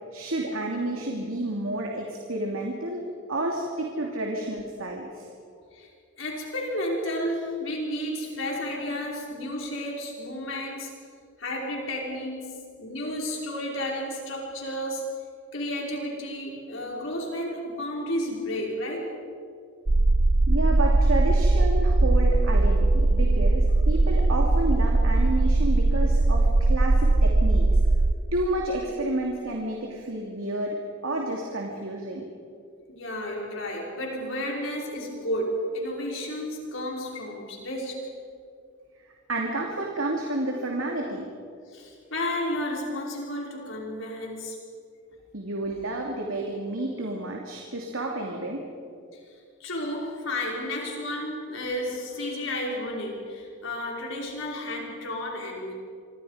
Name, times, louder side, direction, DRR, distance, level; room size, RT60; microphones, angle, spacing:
voice 1, 0.1-5.3 20.5-27.7 28.3-32.3 39.3-41.3 45.3-48.7, right 1 dB, 85° right, 0 dB, 2.8 m, -30 dB
voice 2, 6.2-10.9 11.4-15.2 15.5-19.2 32.9-38.0 41.7-44.6 49.1-49.2 49.6-55.7, left 1 dB, 70° left, -2 dB, 5.4 m, -32 dB
sound 1, 19.9-28.1, right 2 dB, 35° right, 0.6 m, -20 dB
26.0 x 26.0 x 5.1 m, 2.3 s
head